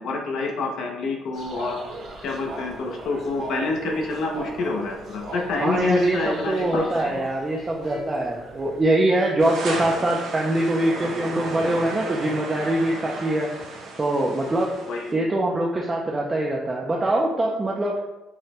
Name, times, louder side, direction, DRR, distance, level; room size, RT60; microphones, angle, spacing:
voice 1, 0.0-1.8 2.2-7.2 9.7-9.8 14.9-15.2, left 3 dB, 60° left, 2 dB, 0.5 m, -27 dB
sound 1, 1.3-8.8, right 2 dB, 50° right, 0.8 m, -39 dB
voice 2, 5.6-13.5 14.0-14.7 15.1-18.0, right 1 dB, 20° right, -2 dB, 0.3 m, -23 dB
sound 2, 6.5-7.0 7.8-8.3 9.1-9.6 10.5-11.0 11.7-12.3, left 3 dB, 80° left, 0.9 m, -41 dB
sound 3, 9.4-15.1, right 2 dB, 75° right, 0.9 m, -34 dB
4.8 x 2.1 x 2.8 m, 1.0 s
cardioid pair, 150°, 0 cm